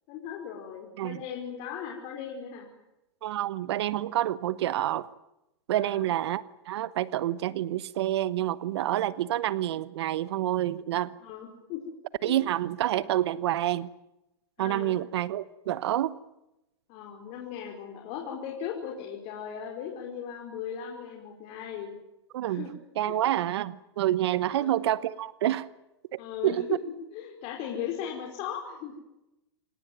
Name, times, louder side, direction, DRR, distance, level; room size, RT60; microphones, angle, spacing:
voice 1, 0.1-2.7 5.7-6.1 11.2-11.8 12.2-12.4 14.6-14.9 16.9-21.9 22.5-22.7 23.0-23.2 24.4-24.8 26.2-26.8 27.1-28.9, left 8 dB, 45° left, 1 dB, 5.0 m, -38 dB
voice 2, 3.2-5.1 5.7-11.2 12.2-13.9 14.6-16.2 22.3-22.7 23.0-25.7 26.1-26.6, right 13 dB, 70° right, 18 dB, 1.0 m, -28 dB
26.5 x 18.5 x 9.2 m, 0.92 s
hypercardioid pair, 125°, 14 cm